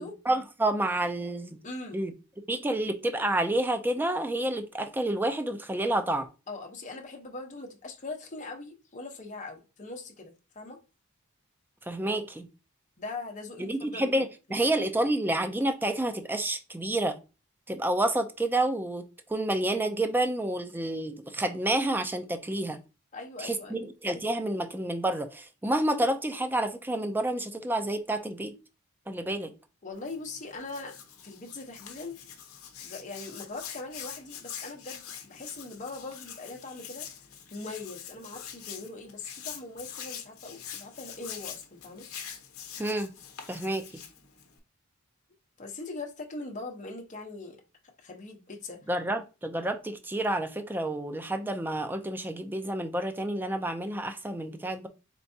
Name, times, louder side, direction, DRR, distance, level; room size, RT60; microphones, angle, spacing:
voice 1, 0.0-1.6 1.9-2.1 2.5-6.3 11.9-12.5 13.6-17.2 17.7-19.0 19.3-22.8 23.4-28.5 29.1-29.5 42.8-43.1 43.5-43.8 48.9-54.9, right 1 dB, 10° right, 0.4 m, -29 dB
voice 2, 1.6-2.0 6.5-10.8 13.0-14.3 14.6-14.7 23.1-23.9 29.8-31.0 31.2-32.2 32.8-37.1 37.5-42.1 45.6-47.6 48.0-48.8, left 3 dB, 35° left, 0.9 m, -41 dB
Hands, 29.9-44.6, left 8 dB, 75° left, 0.9 m, -44 dB
4.5 x 3.4 x 2.7 m
head